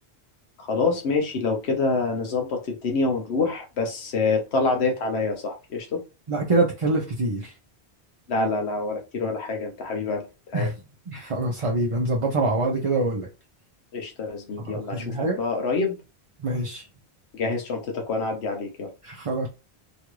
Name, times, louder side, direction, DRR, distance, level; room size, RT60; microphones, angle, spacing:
voice 1, 0.6-6.0 8.3-10.7 13.9-16.0 17.3-18.9, left 3 dB, 80° left, 1.0 m, -26 dB
voice 2, 6.3-7.5 10.5-10.7 11.1-13.3 14.7-15.4 16.4-16.8 19.0-19.5, right 2 dB, 40° right, 0.5 m, -25 dB
3.0 x 2.4 x 3.0 m
omnidirectional pair, 1.1 m